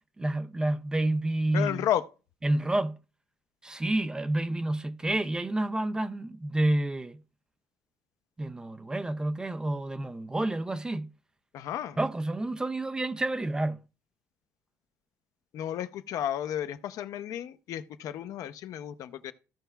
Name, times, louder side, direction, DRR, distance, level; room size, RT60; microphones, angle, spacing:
voice 1, 0.2-1.9 2.4-3.0 3.6-7.2 8.4-11.1 12.0-13.8, right 1 dB, 10° right, 0.4 m, -29 dB
voice 2, 1.5-2.0 11.5-12.0 15.5-19.3, left 11 dB, 60° left, 0.6 m, -32 dB
15.5 x 5.5 x 2.3 m
cardioid pair, 145°, 6 cm